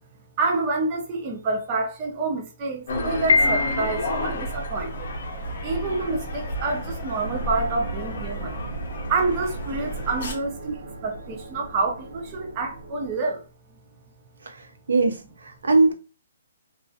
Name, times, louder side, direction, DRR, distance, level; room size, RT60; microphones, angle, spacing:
voice 1, 0.4-5.1 5.6-13.4, right 3 dB, 20° right, 0.4 m, -28 dB
sound 1, 2.9-10.3, equal, 40° left, 0.7 m, -31 dB
Piano, 3.3-4.3, left 3 dB, 80° left, 0.6 m, -22 dB
sound 2, 7.1-13.2, right 1 dB, 50° right, 0.7 m, -38 dB
voice 2, 14.9-15.9, right 3 dB, 90° right, 0.6 m, -20 dB
2.3 x 2.1 x 2.6 m
hypercardioid pair, 175°, 0 cm